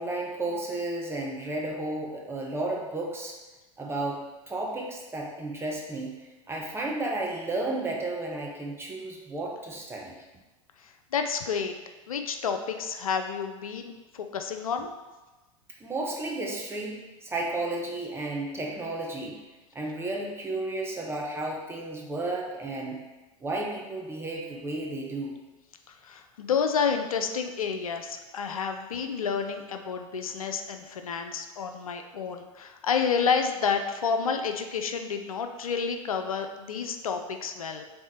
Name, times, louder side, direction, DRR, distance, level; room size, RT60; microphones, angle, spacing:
voice 1, 0.0-3.3 3.8-10.2 15.8-19.4 19.7-23.1 23.4-25.4, right 2 dB, 15° right, -1 dB, 0.9 m, -33 dB
voice 2, 10.8-11.7 12.1-14.9 25.9-37.8, left 6 dB, 85° left, 6 dB, 0.5 m, -30 dB
3.6 x 3.3 x 4.3 m, 1.1 s
hypercardioid pair, 95°, 18 cm